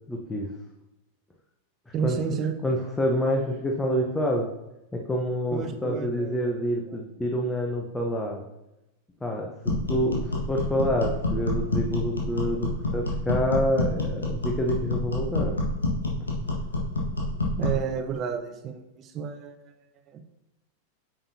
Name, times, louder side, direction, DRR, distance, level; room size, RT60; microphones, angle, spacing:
voice 1, 0.1-0.5 2.0-2.2 2.6-4.5 4.9-8.4 9.2-15.6, equal, 10° left, 0 dB, 0.9 m, -27 dB
voice 2, 1.9-2.6 5.5-7.0 17.6-19.7 20.1-20.2, right 7 dB, 30° right, 7 dB, 0.8 m, -31 dB
sound 1, 9.6-17.8, left 2 dB, 75° left, 1.6 m, -28 dB
9.0 x 6.3 x 2.8 m, 0.93 s
figure-of-eight pair, 90°, 0 cm